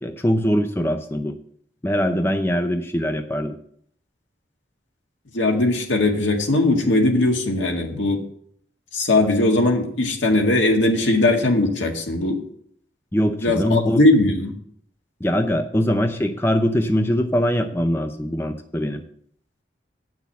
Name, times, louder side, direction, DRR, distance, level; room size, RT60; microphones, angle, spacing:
voice 1, 0.0-1.4 1.8-3.6 13.1-14.0 15.2-19.0, equal, 15° left, 6 dB, 0.6 m, -22 dB
voice 2, 5.3-8.2 8.9-12.4 13.4-14.5, left 2 dB, 85° left, 2 dB, 1.9 m, -19 dB
8.7 x 6.3 x 6.9 m, 0.64 s
head